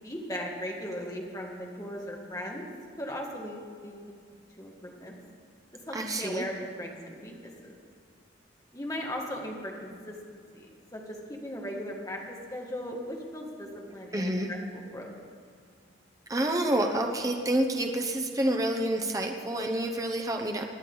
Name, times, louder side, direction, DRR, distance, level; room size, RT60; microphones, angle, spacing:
voice 1, 0.0-2.7 3.0-4.0 4.6-5.1 5.9-7.5 8.7-15.1, equal, 20° left, -1 dB, 1.7 m, -38 dB
voice 2, 5.9-6.4 14.1-14.5 16.3-20.6, right 1 dB, 20° right, 2 dB, 0.8 m, -28 dB
19.5 x 10.5 x 3.9 m, 2.2 s
head